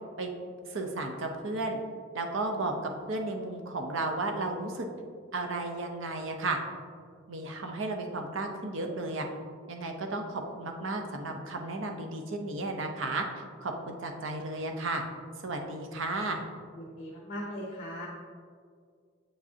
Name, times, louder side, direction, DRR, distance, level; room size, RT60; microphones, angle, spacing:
voice 1, 0.7-1.8 2.1-4.9 5.3-6.6 7.3-9.3 9.7-13.2 13.6-15.0 15.4-16.5, right 2 dB, 70° right, 3 dB, 0.7 m, -33 dB
voice 2, 16.7-18.1, equal, 40° left, -2 dB, 0.7 m, -39 dB
7.4 x 5.0 x 2.7 m, 2.1 s
head